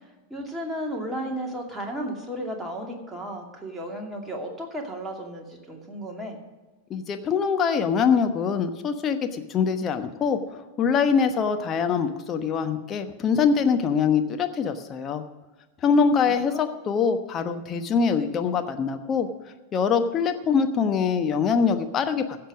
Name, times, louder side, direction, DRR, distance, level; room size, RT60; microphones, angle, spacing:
voice 1, 0.3-6.4 16.3-16.6, equal, 5° right, -1 dB, 2.5 m, -34 dB
voice 2, 6.9-15.2 15.8-19.3 19.7-22.4, left 6 dB, 25° left, 7 dB, 1.1 m, -23 dB
16.0 x 6.8 x 6.3 m, 1.1 s
figure-of-eight pair, 90°, 0 cm